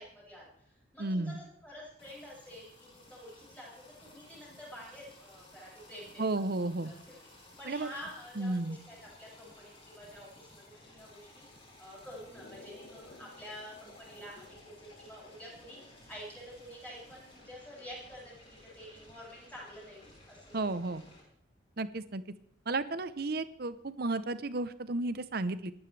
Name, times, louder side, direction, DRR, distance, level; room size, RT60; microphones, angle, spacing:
voice 1, 0.0-6.2 6.5-20.7, equal, 10° left, -6 dB, 7.2 m, -49 dB
voice 2, 1.0-1.4 6.2-6.9 7.7-7.9 8.4-8.8 20.5-21.0 21.8-22.2 22.7-25.7, right 2 dB, 55° right, 13 dB, 0.8 m, -33 dB
sound 1, 2.0-21.2, left 1 dB, 30° left, 5.4 m, -57 dB
sound 2, 12.3-16.4, left 2 dB, 55° left, 1.4 m, -56 dB
27.5 x 12.0 x 3.4 m, 0.66 s
head